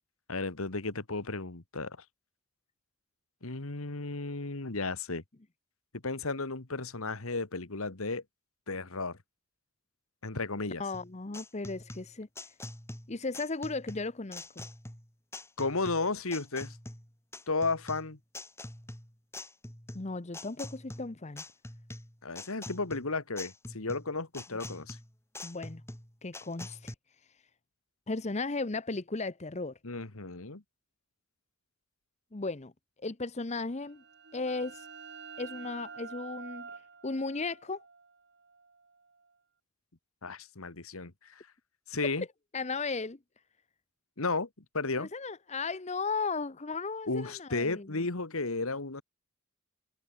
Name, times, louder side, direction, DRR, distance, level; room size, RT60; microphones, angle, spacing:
voice 1, 0.3-2.0 3.4-5.2 6.0-8.2 8.7-9.2 10.2-10.8 15.6-16.8 17.5-18.2 22.2-25.0 29.8-30.6 40.2-41.4 41.9-42.2 44.2-44.5 44.7-45.1 47.1-49.0, left 3 dB, 70° left, 1.8 m, -33 dB
voice 2, 10.8-12.3 13.1-14.7 19.9-21.4 24.5-24.8 25.4-25.8 26.2-26.9 28.1-29.7 32.3-32.7 33.0-34.0 34.3-34.9 35.4-36.7 37.0-37.8 42.5-43.2 45.0-47.9, left 3 dB, 30° left, 0.8 m, -35 dB
sound 1, 10.9-26.9, left 2 dB, 10° left, 2.6 m, -45 dB
sound 2, 33.8-39.3, right 5 dB, 50° right, 3.4 m, -48 dB
head